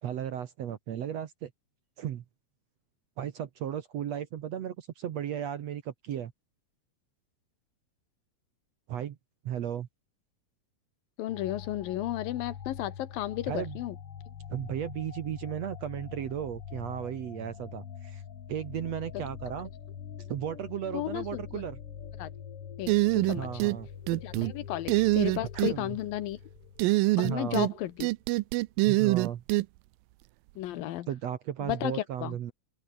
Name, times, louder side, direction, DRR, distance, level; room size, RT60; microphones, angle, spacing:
voice 1, 0.0-1.5 2.0-2.2 3.2-6.3 8.9-9.2 9.4-9.9 13.5-13.8 14.5-18.2 18.5-19.7 20.3-21.8 23.4-23.9 25.6-26.0 27.2-27.7 28.8-29.4 31.1-32.5, right 10 dB, 60° right, 2.0 m, -35 dB
voice 2, 11.2-14.0 19.1-19.2 20.2-20.3 20.9-21.6 22.2-22.3 22.8-23.5 24.1-26.4 27.2-28.1 30.6-31.1 31.6-32.4, left 13 dB, 80° left, 2.9 m, -34 dB
sound 1, 11.3-27.6, left 8 dB, 50° left, 2.4 m, -44 dB
sound 2, 22.9-23.8 24.1-24.5 24.9-25.7 26.8-27.7 28.0-29.6, right 20 dB, 85° right, 2.4 m, -24 dB
open air
omnidirectional pair, 4.0 m